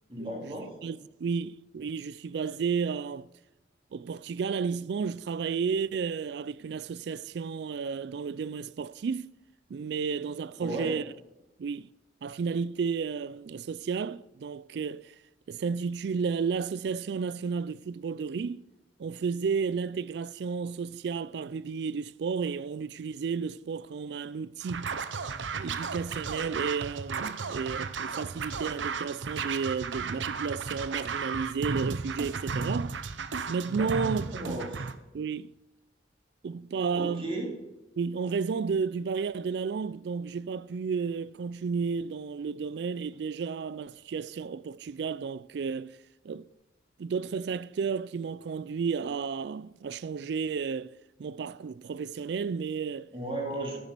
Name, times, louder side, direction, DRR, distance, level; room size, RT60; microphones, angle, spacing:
voice 1, 0.1-0.7 10.6-10.9 33.6-34.9 36.9-37.5 53.1-53.8, right 1 dB, 30° right, 3.1 m, -35 dB
voice 2, 0.8-3.3 3.9-9.3 9.7-11.0 11.6-11.9 12.2-15.1 15.5-18.7 19.0-25.0 25.5-33.0 33.5-34.6 35.1-35.5 36.4-37.3 38.0-46.0 46.2-46.5 47.0-53.1, right 5 dB, 60° right, 0.3 m, -32 dB
Scratching (performance technique), 24.6-34.9, right 5 dB, 85° right, 0.7 m, -34 dB
10.0 x 7.2 x 6.7 m
head